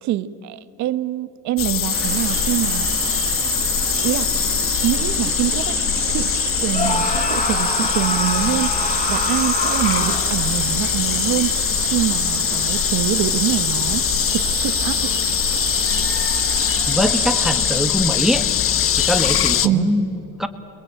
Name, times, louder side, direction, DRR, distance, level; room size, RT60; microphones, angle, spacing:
voice 1, 0.0-2.9 4.0-4.3 4.8-5.8 6.1-6.3 6.6-8.7 9.1-11.5 11.9-14.0 14.3-14.9 19.6-19.9, right 13 dB, 70° right, 13 dB, 1.3 m, -24 dB
sound 1, 1.6-19.7, left 10 dB, 45° left, 1.1 m, -22 dB
sound 2, 1.9-17.8, right 10 dB, 45° right, 1.3 m, -29 dB
Screaming, 6.7-10.5, left 2 dB, 25° left, 4.4 m, -25 dB
voice 2, 16.9-18.5 19.0-20.5, equal, ahead, 8 dB, 1.6 m, -22 dB
29.5 x 22.0 x 9.0 m, 2.9 s
cardioid pair, 120°, 29 cm